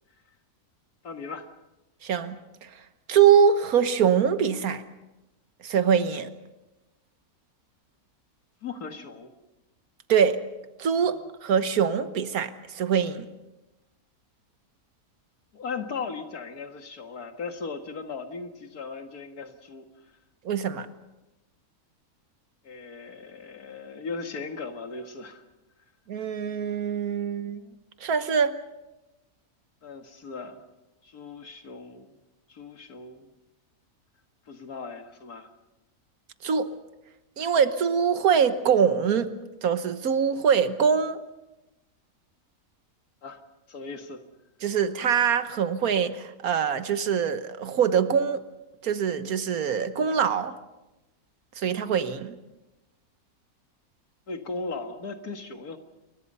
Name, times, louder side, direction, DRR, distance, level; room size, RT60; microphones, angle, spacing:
voice 1, 1.0-1.5 8.6-9.3 11.1-11.2 15.5-19.9 22.6-25.4 29.8-30.7 31.0-32.1 32.5-33.3 34.5-35.5 43.2-43.4 43.7-44.2 54.3-55.8, left 4 dB, 90° left, 6 dB, 2.4 m, -37 dB
voice 2, 2.0-2.4 3.1-4.8 5.6-6.3 10.1-10.4 10.8-13.3 20.5-20.9 26.1-27.6 28.0-28.6 36.4-36.7 37.4-39.3 39.6-41.2 44.6-48.4 48.8-50.5 51.6-52.4, right 7 dB, 75° right, 11 dB, 1.6 m, -23 dB
29.0 x 22.5 x 5.6 m, 1.0 s
omnidirectional pair, 1.5 m